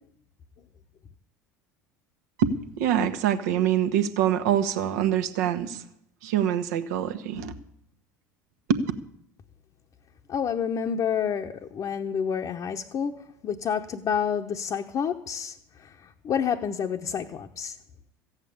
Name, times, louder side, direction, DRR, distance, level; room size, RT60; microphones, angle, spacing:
voice 1, 2.4-5.8 6.2-7.5 8.7-8.8, right 9 dB, 70° right, 1.2 m, -25 dB
voice 2, 10.3-13.2 13.4-17.8, left 7 dB, 40° left, 0.9 m, -29 dB
15.0 x 8.2 x 8.5 m
hypercardioid pair, 75°, 9 cm